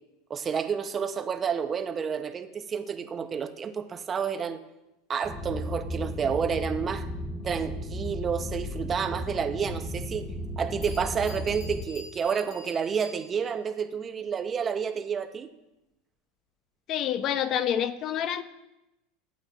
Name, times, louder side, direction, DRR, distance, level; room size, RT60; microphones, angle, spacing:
voice 1, 0.3-4.6 5.1-7.1 7.4-10.3 10.6-15.5, right 6 dB, 30° right, 9 dB, 0.5 m, -30 dB
sound 1, 5.2-11.8, left 1 dB, 10° left, 1.2 m, -35 dB
Bell, 10.4-10.5 10.8-13.6, left 2 dB, 30° left, 2.7 m, -48 dB
voice 2, 16.9-18.4, left 9 dB, 45° left, 13 dB, 0.4 m, -27 dB
8.3 x 8.1 x 2.3 m, 0.94 s
hypercardioid pair, 100°, 0 cm